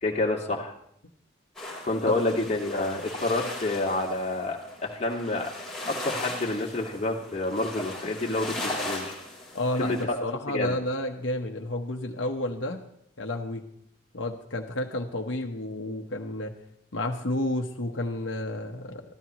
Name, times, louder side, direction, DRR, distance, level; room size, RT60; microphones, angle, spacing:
voice 1, 0.0-0.7 1.8-5.5 5.9-9.1 9.8-10.2 10.5-10.8, left 2 dB, 35° left, -1 dB, 2.0 m, -28 dB
sound 1, 1.5-10.0, left 1 dB, ahead, 4.0 m, -38 dB
voice 2, 9.5-12.8 13.2-13.6 14.1-16.5 16.9-19.0, left 1 dB, 70° left, 3 dB, 1.1 m, -31 dB
24.0 x 14.5 x 3.1 m, 0.73 s
head